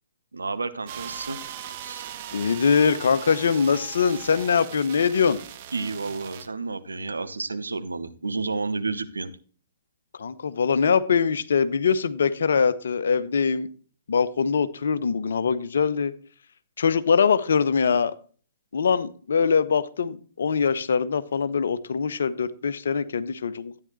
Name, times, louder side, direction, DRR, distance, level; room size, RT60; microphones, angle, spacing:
voice 1, 0.3-1.4 1.8-2.1 5.7-9.3, right 3 dB, 75° right, 10 dB, 1.1 m, -31 dB
sound 1, 0.9-6.5, right 10 dB, 40° right, 1.1 m, -39 dB
voice 2, 2.3-5.4 10.2-13.7 14.1-16.1 16.8-18.1 18.7-23.8, left 6 dB, 60° left, 14 dB, 0.9 m, -23 dB
13.0 x 9.6 x 3.2 m, 0.42 s
figure-of-eight pair, 120°, 0 cm